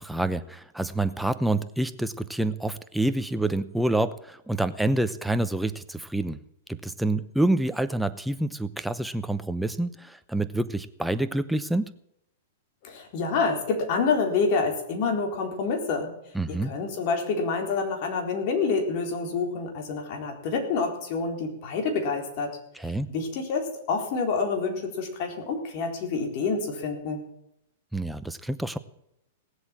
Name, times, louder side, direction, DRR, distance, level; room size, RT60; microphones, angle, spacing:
voice 1, 0.0-6.4 6.7-11.9 16.3-16.7 22.7-23.1 27.9-28.8, right 2 dB, ahead, 11 dB, 0.8 m, -27 dB
voice 2, 12.8-16.1 16.5-22.5 23.1-27.2, left 4 dB, 50° left, 3 dB, 4.0 m, -27 dB
18.0 x 8.1 x 7.4 m, 0.79 s
hypercardioid pair, 135°, 0 cm